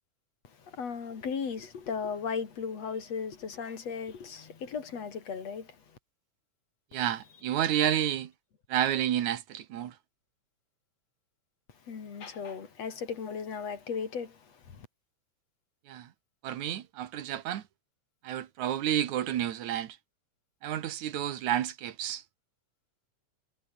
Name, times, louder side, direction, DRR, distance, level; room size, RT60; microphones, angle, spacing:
voice 1, 0.4-5.8 6.9-7.0 11.8-14.9, left 6 dB, 60° left, 3.9 m, -36 dB
voice 2, 6.9-8.3 8.7-9.9 15.9-16.1 16.4-17.6 18.2-20.0 20.6-22.2, right 11 dB, 75° right, 2.7 m, -30 dB
omnidirectional pair, 3.5 m